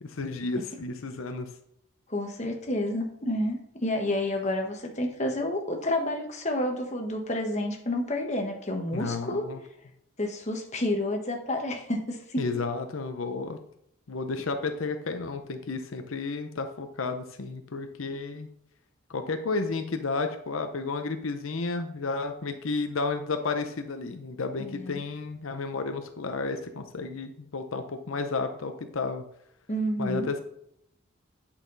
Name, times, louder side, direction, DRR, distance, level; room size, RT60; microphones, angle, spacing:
voice 1, 0.0-1.5 8.9-9.6 12.4-13.6 14.1-18.5 19.1-29.2 30.0-30.4, left 3 dB, 85° left, 7 dB, 0.7 m, -32 dB
voice 2, 2.1-9.4 10.2-12.4 24.6-25.0 29.7-30.3, left 1 dB, 35° left, 2 dB, 1.3 m, -29 dB
8.4 x 5.9 x 4.0 m, 0.74 s
head